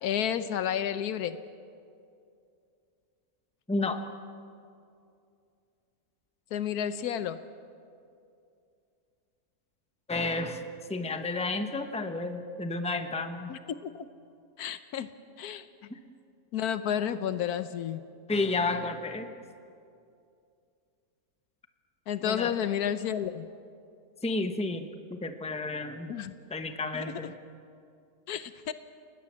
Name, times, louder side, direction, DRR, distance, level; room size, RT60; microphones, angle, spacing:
voice 1, 0.0-1.4 6.5-7.4 13.5-14.1 14.6-15.1 15.4-15.7 16.5-18.0 22.1-23.5 26.1-26.3 26.9-27.2 28.3-28.7, left 9 dB, 90° left, 11 dB, 1.3 m, -31 dB
voice 2, 10.1-10.6 10.9-13.5 15.9-16.0 18.3-19.3 22.2-22.5 24.2-26.1 26.5-27.4, left 3 dB, 5° left, 7 dB, 1.0 m, -31 dB
30.0 x 19.0 x 7.5 m, 2.5 s
omnidirectional pair, 1.6 m